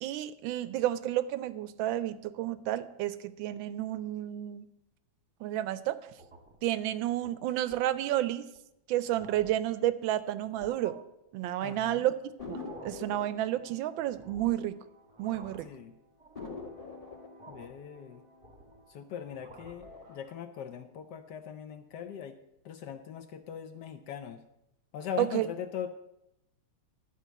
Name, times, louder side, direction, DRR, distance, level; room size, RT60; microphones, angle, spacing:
voice 1, 0.0-4.7 5.4-6.0 6.6-8.5 8.9-11.0 11.3-14.8 15.2-15.7 25.2-25.5, right 13 dB, 75° right, 15 dB, 1.3 m, -31 dB
sound 1, 6.1-6.6 7.1-7.3 7.7-7.9 8.5-8.6 9.0-9.6 10.4-11.0 12.4-13.1 14.1-14.7 15.0-15.8 16.2-16.8 17.4-17.8 18.2-18.9 19.2-19.9, right 2 dB, 20° right, 1.0 m, -52 dB
voice 2, 11.6-12.1 15.6-16.0 17.5-18.2 18.9-22.4 22.6-24.4 24.9-25.9, left 8 dB, 70° left, 9 dB, 1.0 m, -40 dB
sound 2, 12.4-15.4 15.7-15.8 16.3-19.3 19.7-20.3, left 4 dB, 20° left, 1.4 m, -46 dB
11.0 x 4.7 x 8.1 m, 0.85 s
omnidirectional pair, 2.3 m